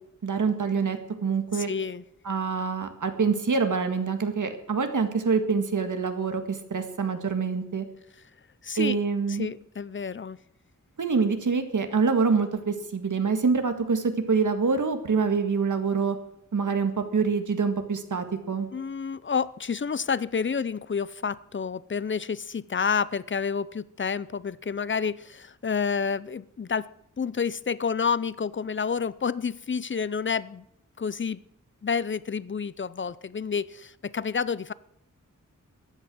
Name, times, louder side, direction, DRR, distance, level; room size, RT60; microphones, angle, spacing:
voice 1, 0.2-1.7 2.3-7.9 8.8-9.5 11.0-16.2 16.5-18.7, right 5 dB, 70° right, 7 dB, 1.8 m, -26 dB
voice 2, 1.5-2.0 8.6-9.0 9.3-10.4 18.7-26.9 27.2-30.6 31.0-31.4 31.8-34.7, left 6 dB, 40° left, 19 dB, 0.6 m, -29 dB
15.0 x 10.5 x 6.1 m, 0.77 s
wide cardioid pair, 85°, 31 cm